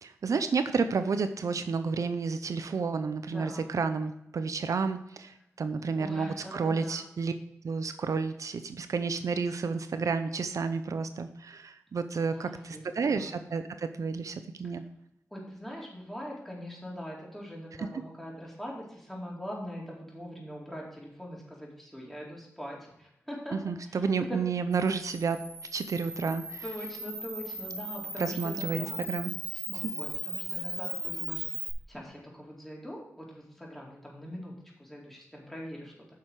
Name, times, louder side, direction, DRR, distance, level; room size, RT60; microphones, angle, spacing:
voice 1, 0.0-7.3 7.6-14.8 17.8-17.9 23.5-25.5 25.7-26.6 28.2-29.9, right 5 dB, 75° right, 10 dB, 0.6 m, -31 dB
voice 2, 3.3-3.8 6.0-7.1 12.3-13.4 15.3-23.6 23.8-24.4 26.6-29.0 29.7-34.5 34.8-35.9, equal, 5° left, -3 dB, 4.3 m, -42 dB
Camera, 24.7-31.7, right 1 dB, 20° right, 2.9 m, -38 dB
9.4 x 6.6 x 4.8 m, 0.81 s
cardioid pair, 50°, 6 cm